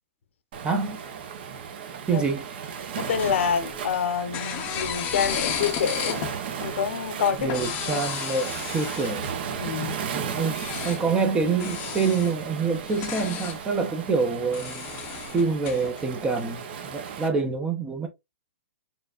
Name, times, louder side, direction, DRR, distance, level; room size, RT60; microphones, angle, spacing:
Waves surf, 0.5-17.3, right 7 dB, 45° right, 0.9 m, -35 dB
voice 1, 0.6-1.0 2.1-2.4 7.4-9.3 10.1-14.9 15.3-18.1, right 4 dB, 10° right, 0.6 m, -26 dB
voice 2, 3.0-6.2 6.6-7.6 7.9-8.0 9.6-10.0, left 7 dB, 65° left, 0.8 m, -27 dB
sound 1, 3.0-3.9 4.3-6.4 7.4-9.3 10.5-11.0 11.6-12.3 12.8-13.6 14.5-16.0, left 8 dB, 25° left, 0.7 m, -33 dB
4.5 x 3.3 x 2.4 m
hypercardioid pair, 160°, 7 cm